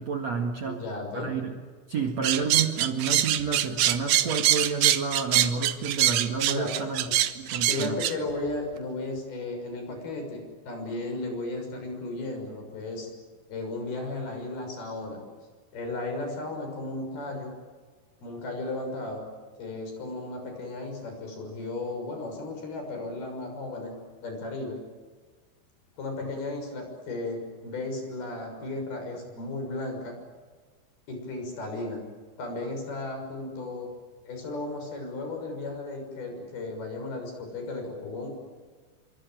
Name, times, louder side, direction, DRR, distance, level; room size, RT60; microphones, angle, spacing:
voice 1, 0.0-0.8 1.1-1.6 1.9-7.1 7.3-8.0, right 5 dB, 50° right, 3 dB, 2.2 m, -30 dB
voice 2, 0.6-1.3 6.5-6.7 7.6-13.1 13.5-15.2 15.7-17.5 18.2-19.2 19.6-23.9 24.2-24.8 26.0-30.2 31.1-32.0 32.4-33.9 34.2-38.3, left 2 dB, 55° left, 4 dB, 8.3 m, -35 dB
sound 1, 2.2-8.1, right 12 dB, 70° right, 2.1 m, -24 dB
27.5 x 25.0 x 7.8 m, 1.5 s
omnidirectional pair, 5.3 m